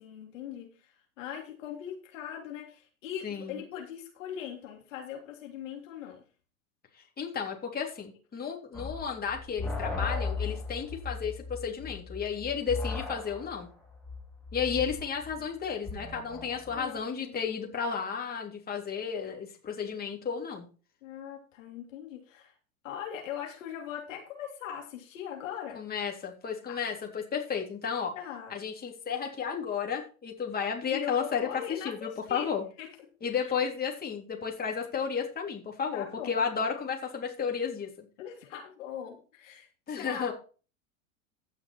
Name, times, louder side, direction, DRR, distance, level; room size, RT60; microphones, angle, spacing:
voice 1, 0.0-6.2 14.6-14.7 16.7-17.0 17.3-17.4 21.0-22.5 22.8-25.8 26.7-26.8 28.1-28.5 30.9-32.5 32.8-33.5 35.9-36.4 38.2-40.3, left 9 dB, 65° left, 1 dB, 3.2 m, -40 dB
voice 2, 3.2-3.6 7.2-13.7 14.5-20.7 25.8-28.1 28.5-32.6 33.2-38.1 39.9-40.3, left 6 dB, 20° left, 1 dB, 3.4 m, -33 dB
sound 1, 8.7-16.9, left 4 dB, ahead, 2.8 m, -37 dB
16.0 x 5.9 x 4.5 m, 0.36 s
hypercardioid pair, 95°, 41 cm